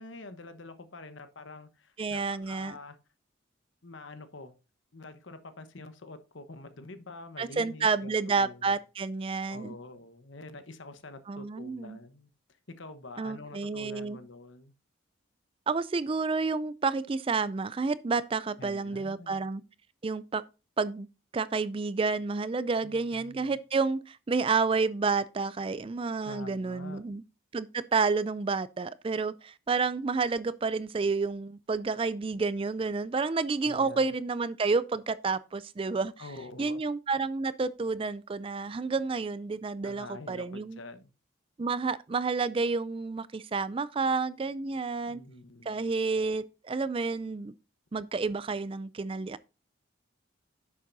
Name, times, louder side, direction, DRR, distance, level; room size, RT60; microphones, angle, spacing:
voice 1, 0.0-3.0 3.8-4.5 4.9-8.8 9.5-12.3 12.8-14.7 18.6-19.5 22.8-23.6 26.2-27.0 33.6-34.1 36.2-36.8 39.8-41.1 45.1-45.8, left 2 dB, 65° left, 1.1 m, -46 dB
voice 2, 2.0-2.7 7.4-9.7 11.3-12.0 13.2-14.2 15.7-19.6 20.0-20.4 20.8-21.1 21.3-27.2 27.5-36.1 36.6-40.8 41.6-45.2 45.7-47.5 47.9-49.5, right 4 dB, 25° right, 0.3 m, -30 dB
10.5 x 7.4 x 2.6 m
head